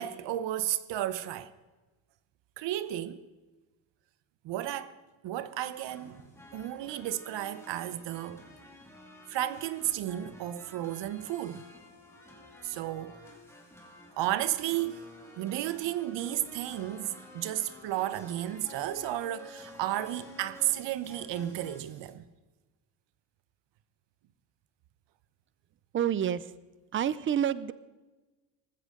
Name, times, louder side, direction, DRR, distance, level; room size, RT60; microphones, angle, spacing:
voice 1, 0.0-1.5 2.6-3.2 4.4-5.0 5.2-8.4 9.3-11.7 12.6-13.2 14.2-15.1 15.4-22.2, right 13 dB, 60° right, 1.0 m, -33 dB
sound 1, 5.7-22.1, left 1 dB, 5° left, 2.2 m, -51 dB
voice 2, 25.9-26.5 26.9-27.7, right 9 dB, 25° right, 0.4 m, -28 dB
19.0 x 15.0 x 3.8 m
cardioid pair, 145°, 48 cm